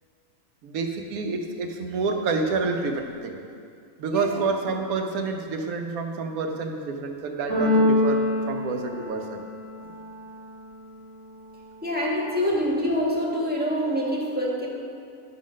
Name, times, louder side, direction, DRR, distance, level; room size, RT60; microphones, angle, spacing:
voice 1, 0.6-3.4 4.0-9.5, right 4 dB, 80° right, 4 dB, 1.2 m, -28 dB
Keyboard (musical), 7.5-9.6, left 2 dB, 60° left, 2.9 m, -23 dB
voice 2, 11.8-14.7, equal, 5° right, -5 dB, 1.2 m, -25 dB
11.0 x 3.9 x 6.2 m, 2.4 s
omnidirectional pair, 1.5 m